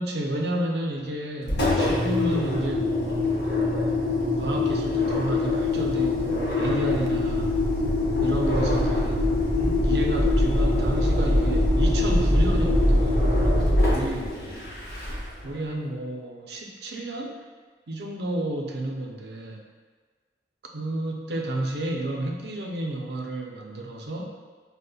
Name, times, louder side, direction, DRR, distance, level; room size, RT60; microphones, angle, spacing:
voice 1, 0.0-3.3 4.1-7.6 8.2-14.3 15.4-17.4 17.9-19.6 20.7-24.3, right 1 dB, 65° right, 1 dB, 0.4 m, -31 dB
Engine, 1.4-15.4, left 2 dB, 60° left, 0.8 m, -23 dB
5.1 x 2.1 x 2.3 m, 1.5 s
head